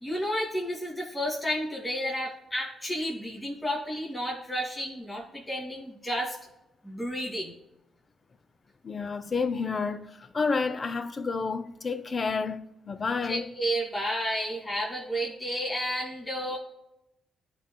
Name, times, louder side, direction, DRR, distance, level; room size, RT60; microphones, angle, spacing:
voice 1, 0.0-6.4 6.8-7.5 13.3-16.6, equal, 25° left, 1.8 m, -31 dB
voice 2, 8.8-13.5, left 4 dB, 40° left, 0.6 m, -30 dB
13.5 x 4.6 x 2.2 m
hypercardioid pair, 45°, 0 cm